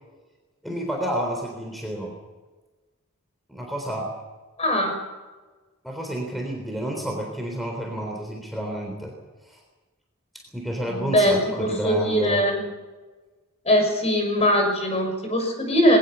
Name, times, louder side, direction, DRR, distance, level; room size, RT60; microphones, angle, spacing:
voice 1, 0.6-2.1 3.5-4.1 5.8-9.1 9.4-9.6 10.3-12.4, equal, ahead, 1 dB, 3.7 m, -30 dB
voice 2, 4.6-4.9 10.9-12.7 13.6-16.0, equal, 30° left, 4 dB, 6.3 m, -21 dB
21.0 x 19.0 x 7.0 m, 1.3 s
head